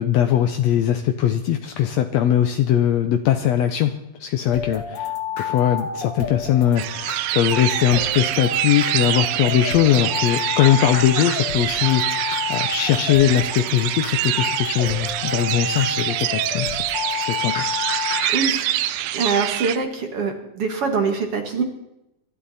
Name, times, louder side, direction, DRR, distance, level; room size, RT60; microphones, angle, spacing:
voice 1, 0.0-12.2 12.5-16.8 17.3-17.7, left 10 dB, 80° left, 7 dB, 1.5 m, -20 dB
sound 1, 4.5-18.3, left 5 dB, 40° left, 1.9 m, -30 dB
sound 2, 6.8-19.8, right 13 dB, 85° right, 2.5 m, -25 dB
voice 2, 18.3-18.7 19.1-21.6, right 5 dB, 50° right, 4 dB, 2.3 m, -24 dB
24.0 x 12.5 x 4.2 m, 0.85 s
omnidirectional pair, 4.0 m